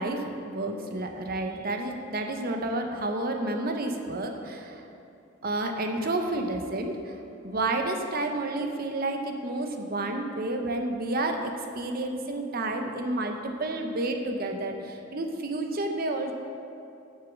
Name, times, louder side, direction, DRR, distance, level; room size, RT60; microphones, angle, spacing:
voice 1, 0.0-4.8 5.4-7.1 7.4-16.3, right 2 dB, 50° right, 4 dB, 0.8 m, -30 dB
7.0 x 6.6 x 7.2 m, 2.7 s
head